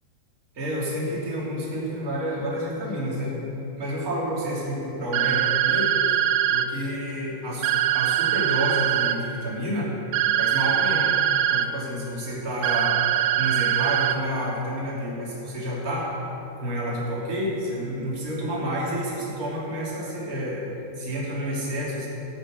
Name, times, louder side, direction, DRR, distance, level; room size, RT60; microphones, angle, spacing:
voice 1, 0.5-3.4 3.8-6.2 6.5-9.9 10.4-11.1 11.5-13.1 13.4-16.1 16.6-20.7 21.0-22.1, equal, 25° right, -6 dB, 2.4 m, -29 dB
sound 1, 5.1-6.7 7.6-9.2 10.1-11.7 12.6-14.2, right 12 dB, 85° right, 3.0 m, -22 dB
16.0 x 6.5 x 6.6 m, 2.9 s
omnidirectional pair, 5.4 m